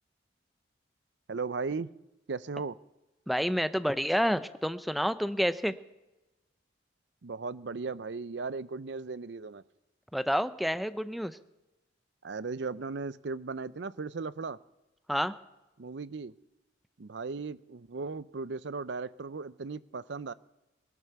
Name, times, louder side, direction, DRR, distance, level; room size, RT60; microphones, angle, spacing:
voice 1, 1.3-1.9 2.3-2.8 7.2-9.6 12.2-14.6 15.8-16.3 17.0-20.3, right 4 dB, 70° right, 17 dB, 0.6 m, -37 dB
voice 2, 3.3-5.7 10.1-11.4 15.1-15.3, equal, ahead, 12 dB, 0.5 m, -29 dB
18.5 x 11.0 x 6.9 m, 1.0 s
head